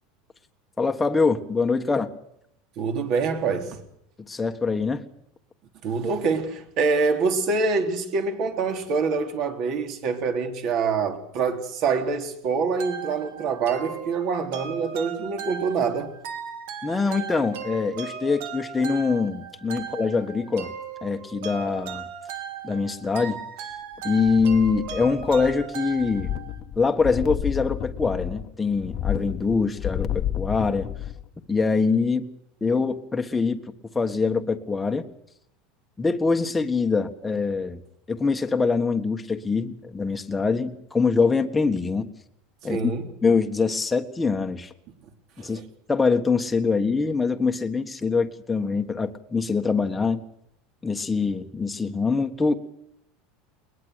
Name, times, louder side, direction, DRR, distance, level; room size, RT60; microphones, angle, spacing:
voice 1, 0.8-2.1 4.3-5.0 16.8-20.7 21.0-22.1 22.6-23.4 24.0-26.3 26.8-30.9 31.5-32.3 32.6-33.6 33.9-35.1 36.0-37.8 38.1-42.1 42.6-42.8 43.2-44.7 45.4-45.6 45.9-50.2 50.8-52.5, left 4 dB, 10° left, 1.5 m, -24 dB
voice 2, 2.8-3.8 5.8-16.1 42.7-43.1 45.4-45.6, right 4 dB, 45° right, 3.7 m, -25 dB
sound 1, 12.8-26.6, right 7 dB, 65° right, 3.2 m, -37 dB
sound 2, 24.2-25.7 26.0-31.3 31.6-31.7, left 11 dB, 35° left, 1.3 m, -31 dB
21.5 x 20.5 x 6.5 m
supercardioid pair, 150°, 0 cm